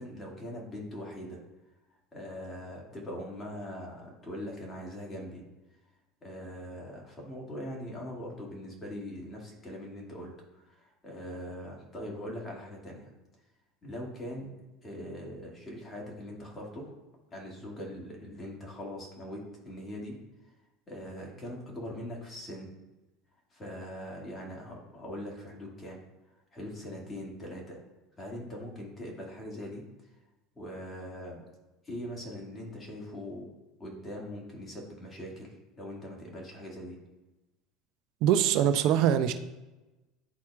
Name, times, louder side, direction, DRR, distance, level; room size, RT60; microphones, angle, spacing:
voice 1, 0.0-1.4 2.1-5.4 6.2-13.1 13.8-14.5 14.8-16.9 17.3-20.1 20.9-22.7 23.5-26.0 26.5-27.8 28.2-29.8 30.6-31.4 31.8-33.5 33.8-37.0, equal, 25° left, -2 dB, 2.1 m, -41 dB
voice 2, 38.2-39.3, right 10 dB, 60° right, 10 dB, 0.5 m, -23 dB
10.5 x 4.2 x 2.4 m, 1.1 s
supercardioid pair, 100°, 0 cm